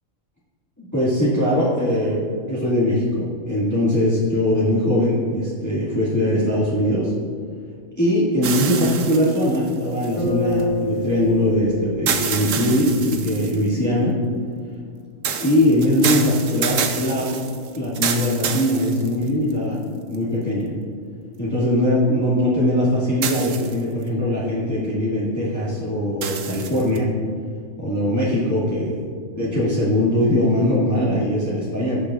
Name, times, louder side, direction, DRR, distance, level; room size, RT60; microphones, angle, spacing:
voice 1, 0.8-7.1 8.0-14.2 15.4-17.3 17.8-19.8 20.1-20.7 21.4-27.1 27.8-29.0 29.4-32.0, left 1 dB, 10° left, -10 dB, 1.9 m, -21 dB
sound 1, 8.4-10.6 12.1-13.7 15.2-19.5 20.1-20.2 23.2-24.0 26.2-27.0, right 7 dB, 65° right, 1.1 m, -27 dB
Bass guitar, 10.2-14.6, left 1 dB, 85° left, 2.3 m, -29 dB
17.0 x 6.6 x 2.4 m, 2.2 s
omnidirectional pair, 1.5 m